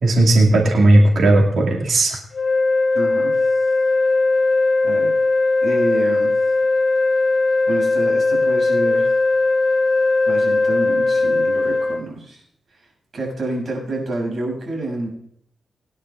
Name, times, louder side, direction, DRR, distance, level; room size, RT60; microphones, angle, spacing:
voice 1, 0.0-2.2, right 2 dB, 70° right, -1 dB, 2.1 m, -15 dB
sound 1, 2.3-12.0, left 3 dB, 40° left, 0.5 m, -18 dB
voice 2, 2.9-3.4 4.8-5.1 5.6-6.3 7.7-9.1 10.3-12.4 13.1-15.1, right 2 dB, 55° right, 0 dB, 6.5 m, -28 dB
24.5 x 10.0 x 2.4 m, 0.71 s
wide cardioid pair, 105°, 0 cm